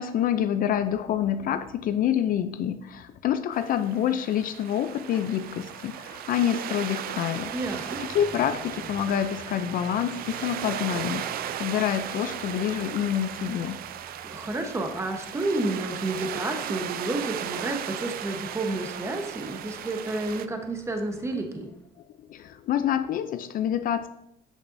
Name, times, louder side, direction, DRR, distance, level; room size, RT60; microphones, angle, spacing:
voice 1, 0.0-7.5 8.1-11.3 11.6-13.8 22.3-24.1, left 10 dB, 55° left, 11 dB, 0.4 m, -27 dB
sound 1, 3.5-20.5, right 10 dB, 60° right, 0.4 m, -36 dB
Motor vehicle (road) / Engine starting / Idling, 5.1-22.0, left 1 dB, 10° left, 1.3 m, -51 dB
voice 2, 7.5-8.0 14.3-21.7, right 2 dB, 15° right, 5 dB, 1.0 m, -30 dB
8.3 x 6.7 x 2.6 m, 0.79 s
cardioid pair, 110°, 17 cm